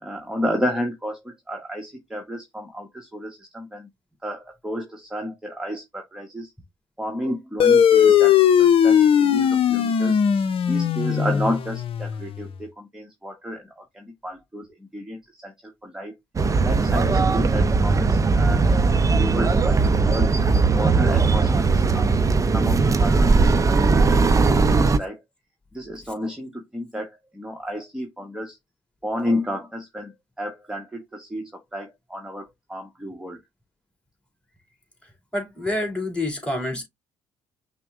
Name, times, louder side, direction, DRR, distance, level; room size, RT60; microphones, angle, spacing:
voice 1, 0.0-1.2 1.5-3.9 4.2-6.5 7.0-10.2 10.7-14.7 14.9-16.1 16.6-18.6 19.1-20.4 20.7-22.1 22.5-24.5 24.7-25.2 25.7-28.6 29.0-33.4, equal, 5° right, 1.2 m, -31 dB
sound 1, 7.6-12.5, left 8 dB, 55° left, 0.7 m, -18 dB
sound 2, 16.4-25.0, right 4 dB, 30° right, 0.6 m, -19 dB
voice 2, 35.0-36.8, left 1 dB, 10° left, 2.6 m, -28 dB
5.8 x 2.2 x 3.6 m
hypercardioid pair, 60°, 11 cm